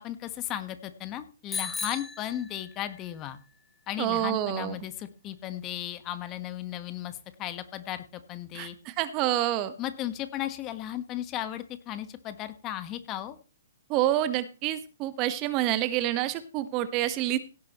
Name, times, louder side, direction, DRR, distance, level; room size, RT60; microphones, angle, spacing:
voice 1, 0.0-3.4 3.9-8.7 9.8-13.4, left 12 dB, 30° left, 11 dB, 1.4 m, -35 dB
Bicycle bell, 1.5-3.1, left 5 dB, 10° left, 3.0 m, -36 dB
voice 2, 4.0-4.8 8.5-9.7 13.9-17.4, right 13 dB, 35° right, 12 dB, 1.3 m, -28 dB
17.0 x 9.6 x 3.1 m, 0.32 s
figure-of-eight pair, 125°, 0 cm